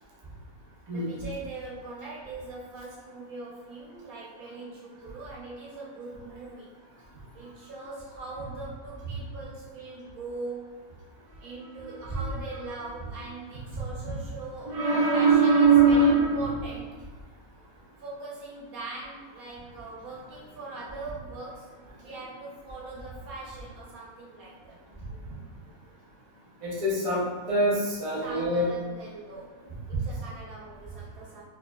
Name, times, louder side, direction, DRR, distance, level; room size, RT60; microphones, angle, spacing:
voice 1, 0.9-6.7 7.3-10.8 11.4-17.0 18.0-21.7 22.0-24.8 28.2-31.4, right 3 dB, 80° right, -5 dB, 1.4 m, -41 dB
voice 2, 14.6-16.4 26.6-28.7, right 3 dB, 30° right, -5 dB, 0.7 m, -22 dB
4.6 x 2.7 x 2.3 m, 1.4 s
omnidirectional pair, 1.5 m